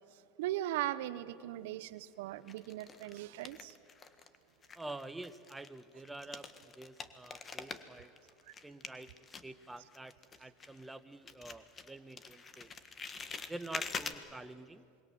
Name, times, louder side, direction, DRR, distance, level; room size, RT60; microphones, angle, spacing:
voice 1, 0.1-3.8 8.5-8.6, right 14 dB, 75° right, 15 dB, 0.8 m, -39 dB
sound 1, 1.3-1.9 2.5-4.4 4.6-11.0 11.3-14.2, left 5 dB, 30° left, 1.6 m, -46 dB
voice 2, 4.7-8.1 8.6-9.1 9.4-10.1 10.4-12.7 13.5-14.8, right 2 dB, 10° right, 10 dB, 1.1 m, -47 dB
27.0 x 21.5 x 7.6 m, 2.5 s
hypercardioid pair, 95°, 0 cm